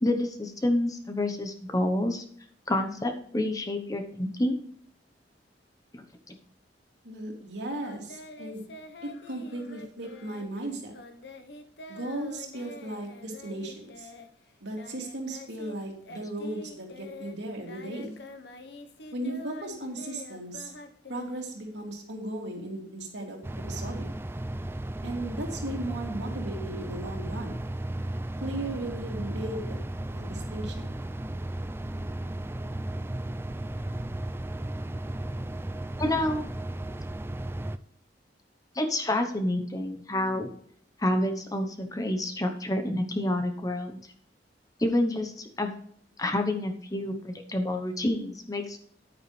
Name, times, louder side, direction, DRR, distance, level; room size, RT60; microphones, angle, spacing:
voice 1, 0.0-2.2 2.7-4.6 5.9-6.3 36.0-36.5 38.7-40.5 41.0-44.0 44.8-45.7 46.2-48.8, left 1 dB, 20° left, 6 dB, 0.9 m, -28 dB
voice 2, 7.0-8.7 9.0-10.9 11.9-14.1 14.6-18.2 19.1-20.7 21.1-24.0 25.0-27.6 28.4-29.8 30.1-30.9, right 1 dB, 70° right, 1 dB, 2.7 m, -36 dB
Singing, 7.8-15.8 16.0-21.9, left 2 dB, 60° left, 1.0 m, -46 dB
sound 1, 23.4-37.8, right 1 dB, 15° right, 0.3 m, -35 dB
9.7 x 9.5 x 3.3 m, 0.63 s
head